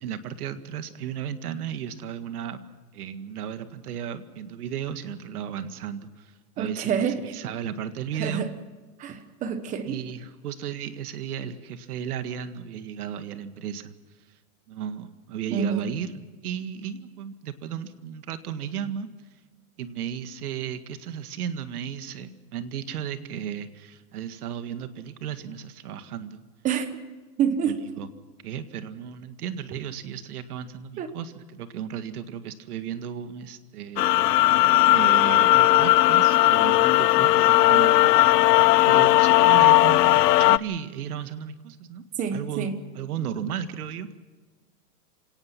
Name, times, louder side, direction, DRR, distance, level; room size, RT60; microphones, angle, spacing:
voice 1, 0.0-2.6 2.9-8.5 9.9-13.9 14.7-16.1 16.4-19.1 19.8-26.4 27.7-28.1 28.4-34.5 34.9-42.0 42.3-44.1, right 8 dB, 70° right, 10 dB, 1.9 m, -34 dB
voice 2, 6.6-7.2 8.2-8.5 9.0-9.9 15.5-15.9 26.6-26.9 27.4-27.8 31.0-31.1 42.2-42.8, right 7 dB, 15° right, 11 dB, 1.1 m, -27 dB
sound 1, 34.0-40.6, left 16 dB, 90° left, 0.7 m, -17 dB
28.0 x 18.0 x 5.9 m, 1.3 s
supercardioid pair, 165°, 47 cm